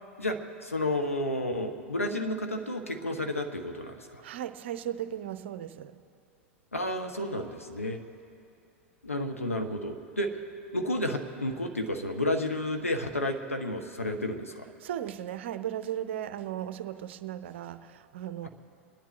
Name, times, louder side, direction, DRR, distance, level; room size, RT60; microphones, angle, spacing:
voice 1, 0.2-4.2 6.7-8.0 9.0-10.4 10.7-14.7, left 1 dB, 85° left, 0.9 m, -31 dB
voice 2, 4.2-6.0 14.8-18.5, right 11 dB, 60° right, 0.6 m, -36 dB
29.5 x 10.0 x 3.2 m
figure-of-eight pair, 85°, 7 cm